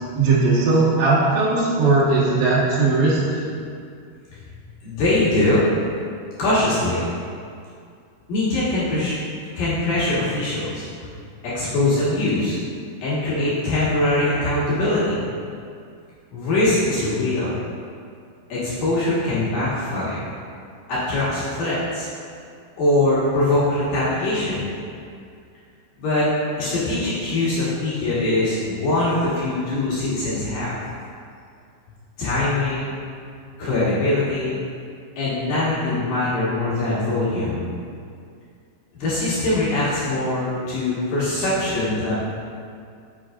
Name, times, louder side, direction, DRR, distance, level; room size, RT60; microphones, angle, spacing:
voice 1, 0.2-3.5, right 3 dB, 70° right, -7 dB, 3.6 m, -18 dB
voice 2, 4.8-5.6 6.4-7.1 8.3-9.1 9.5-10.8 11.4-12.5 13.0-15.3 16.3-17.6 18.5-20.3 20.9-22.1 22.8-24.7 26.0-26.3 26.6-30.8 32.2-33.0 33.6-34.6 35.2-37.7 38.9-42.2, left 2 dB, 60° left, -11 dB, 2.8 m, -22 dB
8.2 x 7.3 x 2.5 m, 2.3 s
omnidirectional pair, 5.3 m